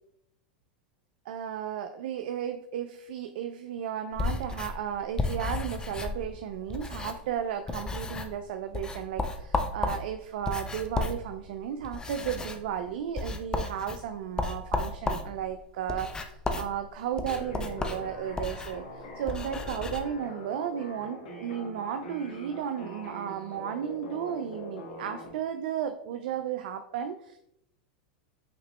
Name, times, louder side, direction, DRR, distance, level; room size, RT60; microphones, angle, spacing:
voice 1, 1.3-27.4, right 9 dB, 70° right, 9 dB, 0.4 m, -34 dB
sound 1, 4.1-7.4 7.7-8.4 8.7-20.0, left 3 dB, 15° left, 0.5 m, -34 dB
sound 2, 17.3-25.3, left 1 dB, 80° left, 1.3 m, -43 dB
5.9 x 2.9 x 3.0 m, 0.75 s
hypercardioid pair, 110°, 5 cm